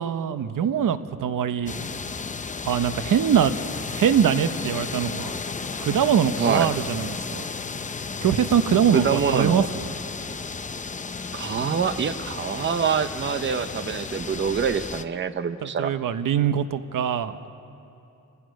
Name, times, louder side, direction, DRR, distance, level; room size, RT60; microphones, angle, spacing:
voice 1, 0.0-1.7 2.6-3.5 3.9-5.3 5.8-7.4 8.2-9.9 15.6-17.4, right 8 dB, 90° right, 11 dB, 0.8 m, -23 dB
sound 1, 1.7-15.0, left 4 dB, 25° left, 0.6 m, -33 dB
voice 2, 8.9-9.7 11.3-15.9, right 6 dB, 35° right, 11 dB, 0.7 m, -25 dB
30.0 x 15.5 x 6.4 m, 2.7 s
wide cardioid pair, 160°, 31 cm